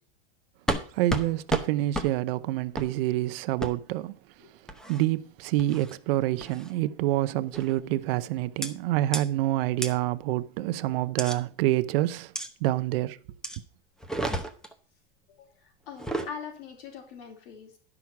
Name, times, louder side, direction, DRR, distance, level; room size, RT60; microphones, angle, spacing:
sound 1, 0.7-0.8 1.1-1.2 1.5-1.6 1.9-2.1 2.7-2.9 3.6-3.7 4.7-5.0 5.6-5.9 6.4-6.7 7.5-7.8 8.6-8.7 9.1-9.2 9.8-9.9 11.2-11.4 12.3-12.5 13.4-13.6 14.0-14.7 15.9-16.3, right 1 dB, ahead, 0.7 m, -31 dB
voice 1, 1.0-4.1 4.9-12.3 12.6-13.2, right 15 dB, 65° right, 0.8 m, -27 dB
voice 2, 15.3-17.7, left 6 dB, 65° left, 4.2 m, -42 dB
11.0 x 5.9 x 5.9 m
supercardioid pair, 150°, 32 cm